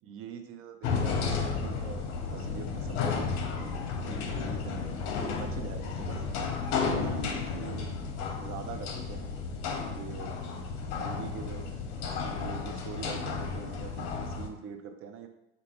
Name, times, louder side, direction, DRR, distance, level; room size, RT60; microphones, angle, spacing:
voice 1, 0.0-6.2 6.8-8.1 8.3-9.3 9.9-10.3 10.9-15.3, right 6 dB, 45° right, 6 dB, 0.5 m, -44 dB
sound 1, 0.8-14.5, left 5 dB, 55° left, 0.7 m, -33 dB
4.9 x 2.3 x 3.0 m, 0.88 s
hypercardioid pair, 80°, 31 cm